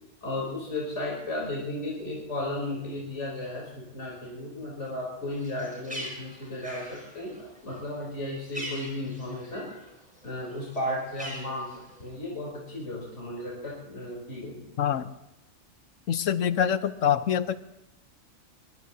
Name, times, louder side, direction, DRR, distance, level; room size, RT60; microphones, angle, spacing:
voice 1, 0.2-9.7 10.2-14.6, left 1 dB, 65° left, -4 dB, 4.3 m, -34 dB
Bird, 5.3-9.9 10.2-12.1, equal, 5° right, 5.6 m, -42 dB
voice 2, 14.8-15.1 16.1-17.6, left 9 dB, 85° left, 12 dB, 1.2 m, -25 dB
23.0 x 21.5 x 2.8 m, 0.93 s
omnidirectional pair, 1.3 m